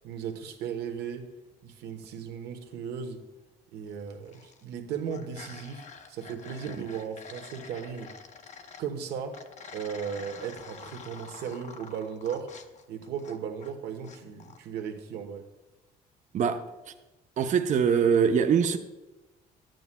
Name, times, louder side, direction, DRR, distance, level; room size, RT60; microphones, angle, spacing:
voice 1, 0.0-1.3 1.6-3.2 3.7-8.1 8.8-9.4 9.7-12.5 12.9-15.5, right 7 dB, 80° right, 1.1 m, -36 dB
sound 1, 4.1-4.6 4.9-8.9 9.3-13.7 14.0-14.6, left 5 dB, 45° left, 0.7 m, -47 dB
voice 2, 16.3-16.7 17.4-18.8, right 7 dB, 45° right, 0.6 m, -23 dB
12.5 x 9.1 x 2.2 m
cardioid pair, 110°, 17 cm